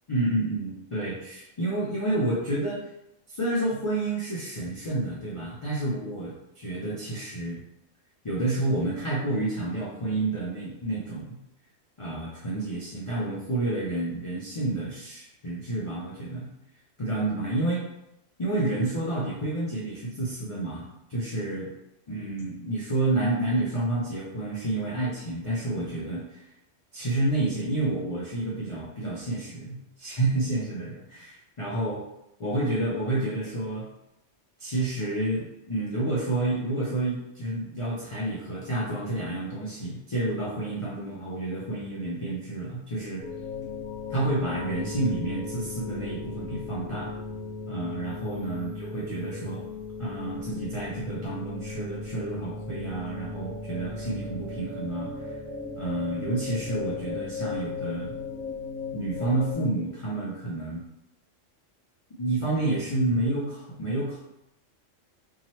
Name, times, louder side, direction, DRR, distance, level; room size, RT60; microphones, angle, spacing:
voice 1, 0.1-2.8 3.3-7.6 8.2-11.4 12.0-16.5 17.0-17.8 18.4-21.7 22.1-26.4 26.9-32.0 32.4-33.9 34.6-43.2 44.1-47.1 47.7-49.6 50.0-55.3 55.8-58.1 58.9-60.8 62.2-64.2, right 2 dB, 50° left, -7 dB, 0.3 m, -29 dB
sound 1, 43.2-59.5, left 4 dB, 55° right, 0.9 m, -37 dB
2.8 x 2.3 x 3.0 m, 0.87 s
omnidirectional pair, 1.3 m